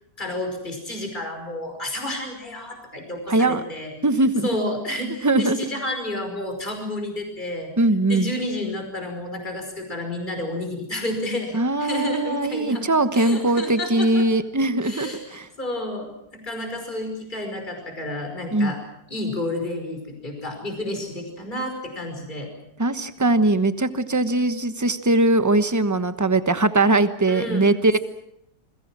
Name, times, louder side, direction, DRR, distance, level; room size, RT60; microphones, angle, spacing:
voice 1, 0.2-4.0 4.4-7.7 8.1-12.8 13.1-14.2 14.8-15.2 15.6-18.8 19.1-22.5 27.2-27.7, left 1 dB, 25° left, 4 dB, 5.5 m, -30 dB
voice 2, 3.3-3.6 4.0-4.5 5.0-5.6 7.8-8.3 11.5-15.5 18.5-18.7 22.8-28.0, right 2 dB, 10° right, 10 dB, 1.0 m, -21 dB
29.5 x 21.5 x 6.2 m, 0.74 s
omnidirectional pair, 1.9 m